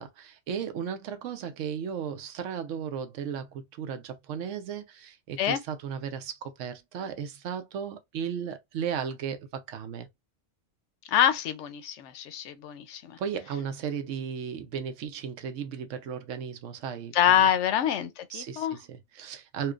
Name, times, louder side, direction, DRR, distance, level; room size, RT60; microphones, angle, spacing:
voice 1, 0.0-10.1 13.2-17.5 18.3-19.7, right 7 dB, 80° right, 1.0 m, -35 dB
voice 2, 11.1-13.2 17.1-18.8, left 10 dB, 75° left, 0.9 m, -25 dB
4.3 x 2.2 x 2.4 m
omnidirectional pair, 1.2 m